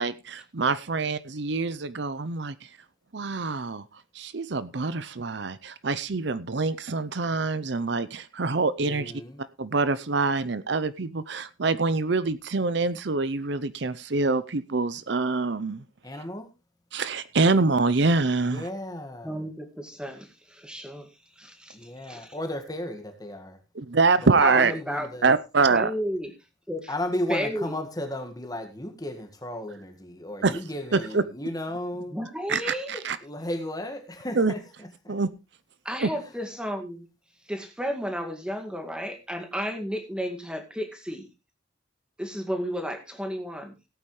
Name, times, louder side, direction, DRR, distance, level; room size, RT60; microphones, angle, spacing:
voice 1, 0.0-2.7 3.1-3.8 4.1-9.1 9.6-15.8 16.9-18.6 23.8-24.7 25.2-25.9 30.4-30.6 30.9-31.2 32.5-33.2 34.4-34.5 35.1-35.3 36.0-36.1, right 3 dB, 60° right, 0.7 m, -25 dB
voice 2, 8.8-9.4 16.0-16.5 18.4-19.4 21.7-23.6 24.2-25.3 26.9-32.2 33.2-35.2 36.1-36.3, left 1 dB, 20° left, 1.8 m, -34 dB
voice 3, 19.2-21.1 21.4-22.4 24.4-25.1 25.7-26.3 26.7-26.9 27.3-27.7 32.1-33.0 35.8-37.1 37.5-41.3 42.2-43.9, equal, 5° right, 2.1 m, -33 dB
17.5 x 8.9 x 3.2 m
head